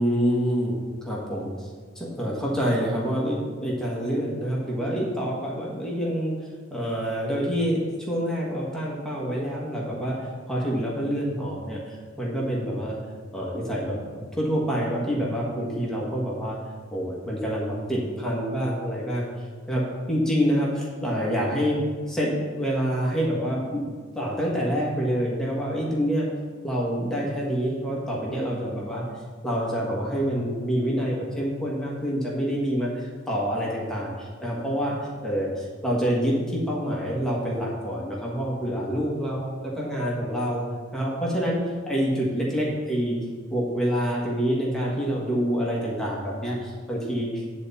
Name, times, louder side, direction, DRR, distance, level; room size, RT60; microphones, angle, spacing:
voice 1, 0.0-1.7 1.9-6.3 6.7-13.0 13.3-14.0 14.3-16.6 16.9-19.3 19.7-21.8 22.1-23.8 24.1-26.3 26.6-29.0 29.4-34.9 35.2-40.6 40.9-41.6 41.9-43.2 43.5-47.6, equal, 5° left, -5 dB, 1.5 m, -27 dB
9.9 x 4.2 x 6.9 m, 1.5 s
head